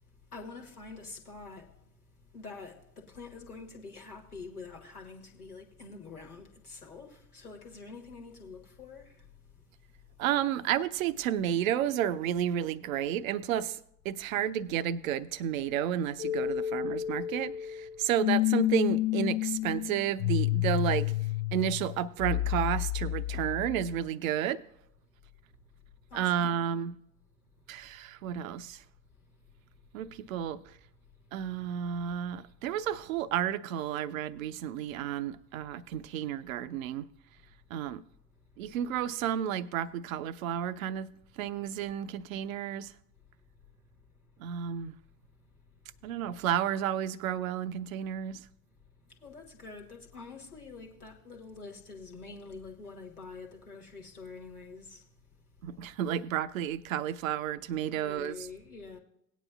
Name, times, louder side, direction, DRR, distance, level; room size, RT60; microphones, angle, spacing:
voice 1, 0.3-1.8 2.3-9.3 26.1-26.6 49.1-55.1 57.8-59.0, left 4 dB, 85° left, 1.4 m, -46 dB
voice 2, 10.2-13.8 14.0-21.1 21.5-24.6 26.1-27.0 27.7-28.8 29.9-30.7 31.3-37.1 37.7-38.0 38.6-41.1 41.4-42.9 44.4-45.0 46.0-48.5 55.6-58.3, right 10 dB, 65° right, 0.6 m, -31 dB
sound 1, 16.2-24.1, left 14 dB, 45° left, 0.6 m, -30 dB
18.0 x 9.2 x 2.3 m
figure-of-eight pair, 65°, 44 cm